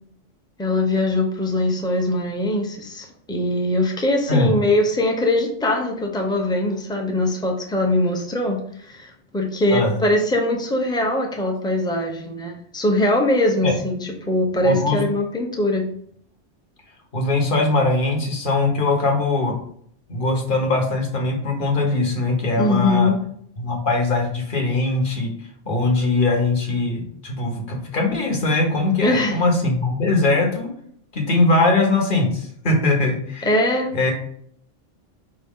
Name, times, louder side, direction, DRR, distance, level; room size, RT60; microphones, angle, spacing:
voice 1, 0.6-15.9 22.6-23.2 29.0-29.4 33.4-33.9, left 1 dB, 5° left, 1 dB, 0.4 m, -21 dB
voice 2, 14.6-15.0 17.1-19.5 20.1-23.1 23.6-25.3 25.7-30.7 31.1-33.5 33.9-34.1, left 2 dB, 45° left, 1 dB, 1.1 m, -21 dB
5.1 x 2.8 x 3.6 m, 0.64 s
omnidirectional pair, 1.3 m